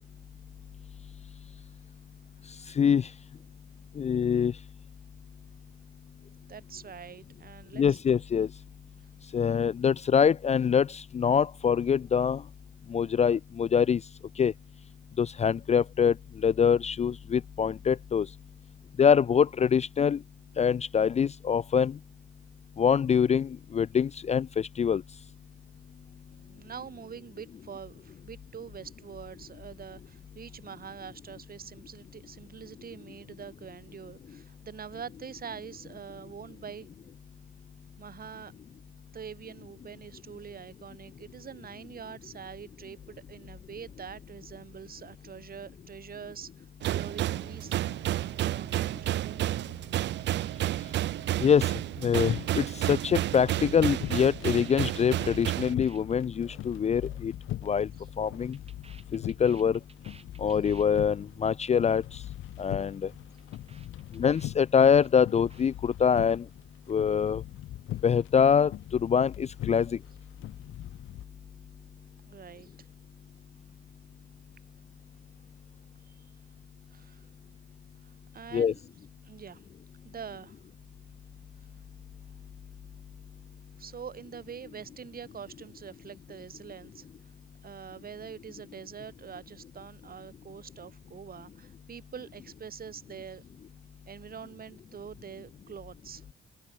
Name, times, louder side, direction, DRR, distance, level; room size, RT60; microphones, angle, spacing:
voice 1, 2.8-3.1 4.0-4.5 7.7-8.5 9.3-12.4 12.9-14.0 14.4-14.5 15.2-16.1 16.4-18.3 19.0-20.2 20.6-22.0 22.8-25.0 51.4-51.7 52.0-57.3 57.6-57.9 58.2-58.6 59.1-59.8 60.4-62.2 62.6-63.1 64.1-66.4 66.9-67.4 68.0-70.0 78.5-78.7, left 7 dB, 35° left, 0.4 m, -24 dB
voice 2, 6.5-8.0 26.3-36.9 38.0-38.5 39.1-47.8 48.2-49.7 58.0-58.1 72.2-72.9 76.0-76.2 76.9-77.3 78.0-78.8 79.2-79.6 80.0-80.6 83.8-87.1 87.6-93.4 94.1-96.2, right 7 dB, 50° right, 3.3 m, -45 dB
sound 1, 46.8-55.7, right 14 dB, 65° right, 0.5 m, -31 dB
sound 2, 52.2-71.2, left 14 dB, 80° left, 2.2 m, -42 dB
sound 3, 53.7-57.8 58.1-61.0 61.3-61.5 61.7-62.1 62.3-62.7 62.9-65.7, right 4 dB, 30° right, 4.6 m, -56 dB
open air
cardioid pair, 90°, 20 cm